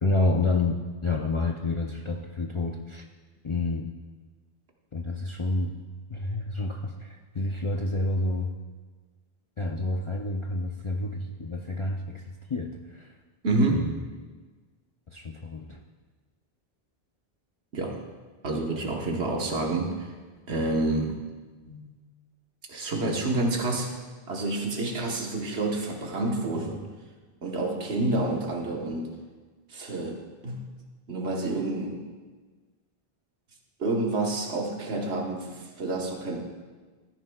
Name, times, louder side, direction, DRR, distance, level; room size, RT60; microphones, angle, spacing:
voice 1, 0.0-3.0 3.4-3.9 4.9-5.7 6.1-8.5 9.6-13.1 13.7-14.0 15.1-15.8, left 2 dB, 40° left, 1 dB, 0.5 m, -29 dB
voice 2, 13.4-13.9 17.7-18.0 18.4-20.1 20.5-21.1 21.7-21.9 22.7-23.9 24.3-26.9 27.4-29.1 29.7-30.2 30.4-30.6 31.1-32.0 33.8-36.4, right 2 dB, 85° right, 0 dB, 1.5 m, -28 dB
15.0 x 10.0 x 2.3 m, 1.4 s
omnidirectional pair, 1.1 m